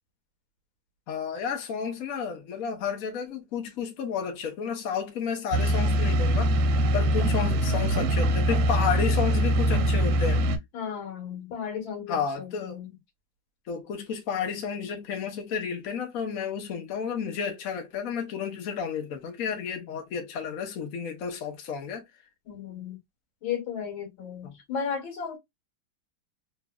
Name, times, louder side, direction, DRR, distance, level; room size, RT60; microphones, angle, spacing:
voice 1, 1.1-6.5 6.9-10.4 12.1-12.8 13.7-22.0 24.4-24.6, left 6 dB, 55° left, 1.1 m, -31 dB
sound 1, 5.5-10.6, equal, 90° right, 1.5 m, -23 dB
voice 2, 10.7-12.9 22.5-23.0 23.4-25.4, left 7 dB, 80° left, 1.9 m, -34 dB
3.2 x 3.1 x 2.2 m
omnidirectional pair, 2.1 m